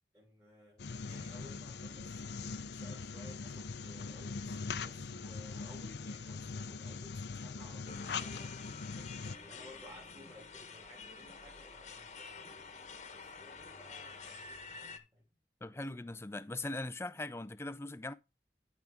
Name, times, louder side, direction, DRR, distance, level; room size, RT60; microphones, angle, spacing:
voice 1, 0.1-2.2 2.7-8.8 9.4-12.7 13.1-15.3 15.7-15.9, left 1 dB, 20° right, 3.1 m, -57 dB
sound 1, 0.8-9.3, left 4 dB, 75° left, 0.6 m, -42 dB
sound 2, 7.9-15.0, left 4 dB, 40° left, 1.2 m, -49 dB
voice 2, 15.6-18.1, left 2 dB, 15° left, 0.4 m, -40 dB
13.5 x 5.0 x 3.5 m
head